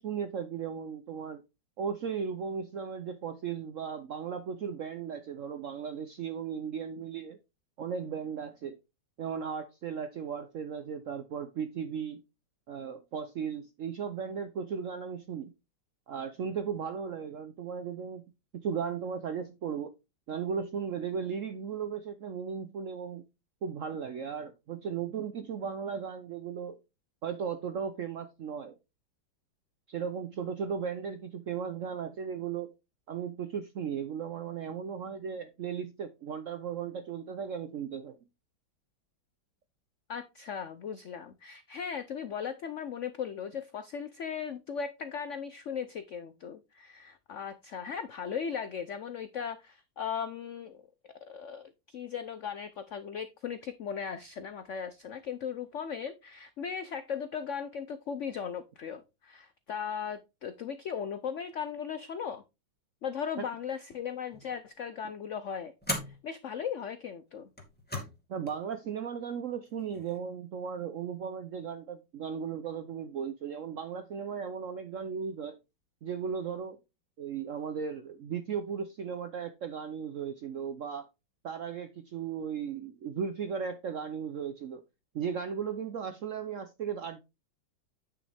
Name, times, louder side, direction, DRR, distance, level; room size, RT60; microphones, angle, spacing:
voice 1, 0.0-1.4 1.8-7.4 7.8-8.8 9.2-12.2 12.7-15.5 16.1-18.2 18.6-19.9 20.3-23.2 23.6-26.8 27.2-28.7 29.9-32.7 33.1-38.2 63.4-63.5 68.3-75.6 76.0-76.8 77.2-81.1 81.4-84.8 85.1-87.2, right 7 dB, 75° right, 0.7 m, -36 dB
voice 2, 40.1-50.8 51.3-62.4 63.0-65.7 66.1-67.5, left 7 dB, 85° left, 0.6 m, -37 dB
sound 1, 64.3-64.7 65.8-66.2 67.5-68.2 68.5-68.6 69.7-70.2, left 1 dB, 5° left, 2.1 m, -37 dB
9.1 x 6.1 x 3.4 m
omnidirectional pair, 2.1 m